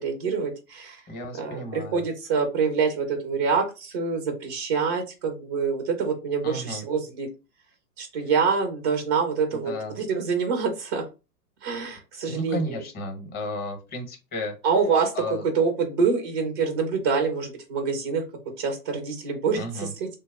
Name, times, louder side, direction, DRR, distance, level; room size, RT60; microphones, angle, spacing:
voice 1, 0.0-1.0 1.4-7.3 8.0-11.0 11.6-12.8 14.6-15.1 15.5-18.2 18.6-20.1, right 5 dB, 20° right, 3 dB, 0.3 m, -26 dB
voice 2, 1.1-2.0 6.4-6.8 9.6-10.0 12.3-14.5 15.1-15.4 19.6-19.9, left 1 dB, 20° left, 4 dB, 0.9 m, -33 dB
3.1 x 2.0 x 3.3 m, 0.29 s
hypercardioid pair, 130°, 48 cm